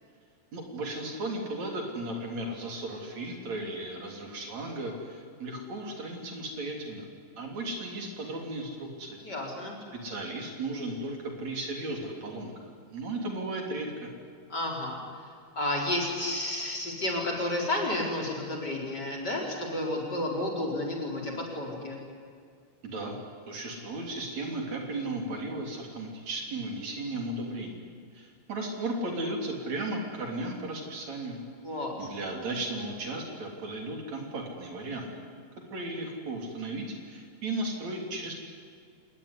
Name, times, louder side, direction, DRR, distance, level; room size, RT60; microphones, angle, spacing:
voice 1, 0.5-7.1 7.4-9.2 9.9-12.5 12.9-14.1 22.8-23.2 23.5-27.8 28.1-31.4 31.7-35.1 35.7-38.3, right 2 dB, 55° right, 2 dB, 4.7 m, -35 dB
voice 2, 9.2-9.7 14.5-15.0 15.6-22.0 31.6-32.1, left 1 dB, 30° left, 0 dB, 4.7 m, -31 dB
27.0 x 20.0 x 9.9 m, 2.2 s
omnidirectional pair, 3.7 m